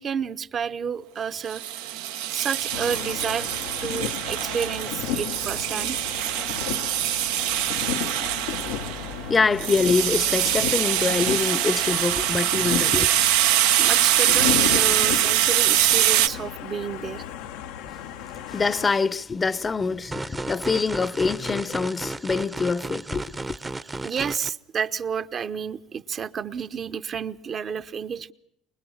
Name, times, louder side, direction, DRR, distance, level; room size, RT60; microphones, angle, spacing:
voice 1, 0.0-1.6 2.3-3.5 3.8-6.0 13.8-17.2 24.0-28.3, right 7 dB, 45° right, 1.0 m, -30 dB
sound 1, 1.5-16.3, right 12 dB, 80° right, 0.9 m, -23 dB
sound 2, 2.7-18.9, left 9 dB, 80° left, 0.9 m, -34 dB
voice 2, 9.3-13.1 18.5-23.5, left 4 dB, 25° left, 0.8 m, -25 dB
sound 3, 20.1-24.5, right 2 dB, 15° right, 0.8 m, -34 dB
24.0 x 21.0 x 7.3 m
supercardioid pair, 80°, 0 cm